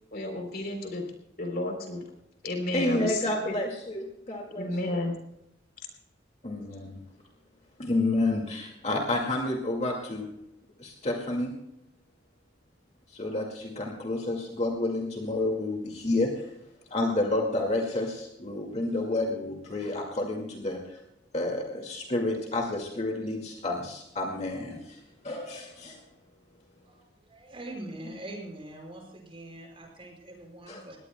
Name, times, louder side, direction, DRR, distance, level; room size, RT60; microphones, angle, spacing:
voice 1, 0.1-1.1 1.4-2.0 2.4-3.6 4.6-5.1, left 2 dB, 50° left, 3 dB, 3.5 m, -32 dB
voice 2, 2.7-5.0 6.4-7.0 7.8-10.3 10.8-11.5 13.1-16.5 16.9-21.0 21.3-26.0 30.7-30.8, left 2 dB, 35° left, 1 dB, 2.1 m, -30 dB
voice 3, 26.8-31.0, right 1 dB, 30° right, 0 dB, 5.4 m, -43 dB
21.5 x 18.0 x 2.3 m, 0.83 s
head